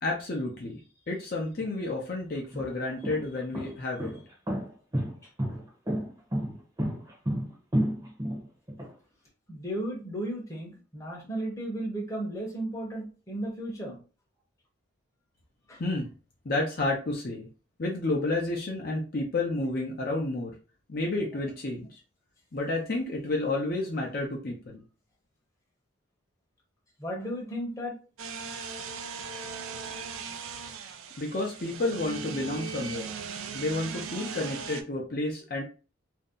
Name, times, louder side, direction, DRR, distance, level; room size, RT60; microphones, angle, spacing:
voice 1, 0.0-0.8 1.1-4.2 15.8-16.1 16.4-17.5 17.8-20.5 20.9-22.0 22.5-24.8 31.2-33.1 33.5-35.6, left 2 dB, 45° left, -1 dB, 0.5 m, -30 dB
sound 1, 1.6-1.7 2.4-8.9, equal, 20° right, 0.8 m, -31 dB
voice 2, 9.5-14.0 15.7-15.8 27.0-27.9 32.9-33.1, right 1 dB, 15° left, -2 dB, 0.8 m, -34 dB
sound 2, 28.2-34.8, right 6 dB, 80° right, 0.4 m, -38 dB
2.6 x 2.1 x 3.6 m, 0.34 s
head